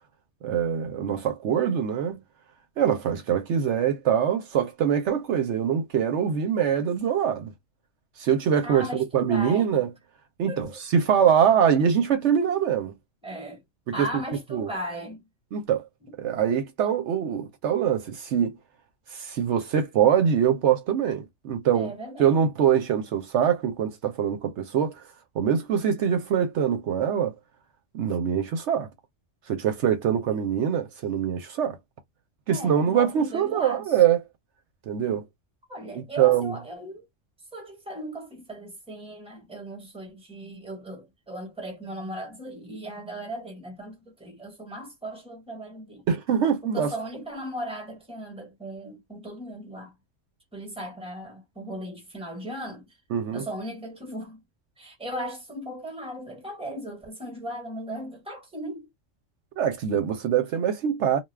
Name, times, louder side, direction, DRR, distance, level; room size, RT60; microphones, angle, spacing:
voice 1, 0.4-2.2 2.8-7.5 8.2-9.9 10.4-13.0 13.9-14.1 14.5-14.7 15.5-15.9 16.2-18.6 19.1-21.9 22.2-25.0 25.4-27.3 27.9-28.9 29.5-31.8 32.5-34.2 34.9-35.2 35.9-36.6 46.1-46.9 53.1-53.4 59.6-61.2, right 8 dB, 70° right, 0.9 m, -23 dB
voice 2, 8.6-9.7 10.5-10.8 13.2-13.6 13.9-15.2 21.7-22.3 32.5-33.8 35.7-37.1 37.5-46.0 46.6-49.9 50.5-52.8 53.3-54.4 54.8-58.9, equal, 5° right, 1.1 m, -37 dB
2.3 x 2.3 x 3.2 m
omnidirectional pair, 1.3 m